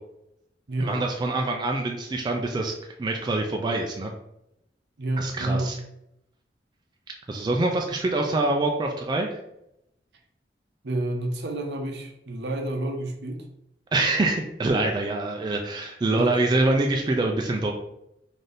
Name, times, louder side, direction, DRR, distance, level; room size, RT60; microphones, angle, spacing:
voice 1, 0.8-2.7 3.0-4.1 5.2-5.8 7.3-9.4 13.9-17.7, right 2 dB, 25° right, 1 dB, 0.3 m, -25 dB
voice 2, 5.0-5.7 10.8-13.4 16.1-16.4, right 1 dB, 70° right, 3 dB, 0.6 m, -29 dB
4.0 x 2.6 x 3.3 m, 0.82 s
head